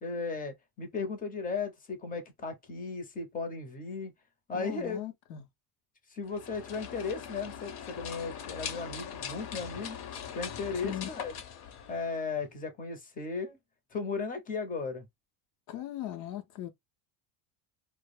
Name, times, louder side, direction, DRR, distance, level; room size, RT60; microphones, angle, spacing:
voice 1, 0.0-4.1 4.5-5.0 6.1-10.0 10.3-11.3 11.9-13.6 13.9-15.1, left 4 dB, 20° left, 0.5 m, -36 dB
voice 2, 4.5-5.4 10.8-11.1 15.7-16.7, left 12 dB, 85° left, 0.7 m, -38 dB
sound 1, 6.2-12.4, left 8 dB, 50° left, 0.7 m, -41 dB
2.2 x 2.0 x 3.1 m
supercardioid pair, 125°, 49 cm